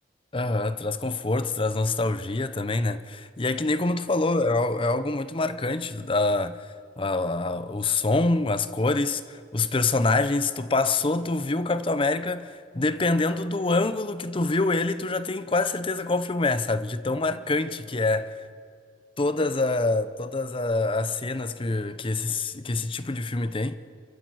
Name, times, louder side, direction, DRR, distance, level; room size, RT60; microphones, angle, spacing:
voice 1, 0.3-6.7 7.0-18.4 19.2-23.8, left 2 dB, 30° left, 0.7 m, -26 dB
27.5 x 13.5 x 7.9 m
head